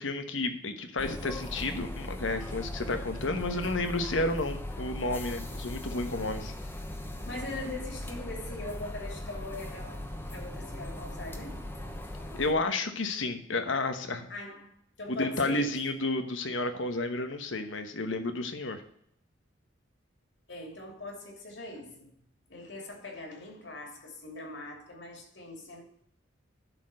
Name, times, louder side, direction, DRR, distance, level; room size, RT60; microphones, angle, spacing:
voice 1, 0.0-6.5 12.4-14.3 15.1-18.8, left 2 dB, 85° left, 1.2 m, -31 dB
sound 1, 1.0-12.5, left 1 dB, 10° left, 1.0 m, -39 dB
voice 2, 7.3-11.6 12.1-12.3 14.3-14.7 15.0-15.8 20.5-22.1 22.5-25.8, left 2 dB, 70° left, 2.7 m, -41 dB
11.0 x 4.4 x 6.4 m
head